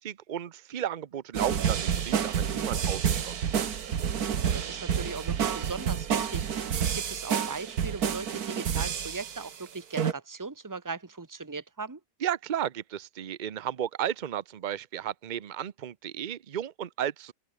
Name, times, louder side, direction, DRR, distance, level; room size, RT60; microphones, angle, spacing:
voice 1, 0.0-3.7 12.2-17.3, right 10 dB, 90° right, 0.4 m, -34 dB
sound 1, 1.3-9.6 10.0-10.1, right 8 dB, 65° right, 1.8 m, -29 dB
voice 2, 4.4-6.5 6.8-12.0, right 4 dB, 10° right, 1.4 m, -39 dB
open air
omnidirectional pair, 1.8 m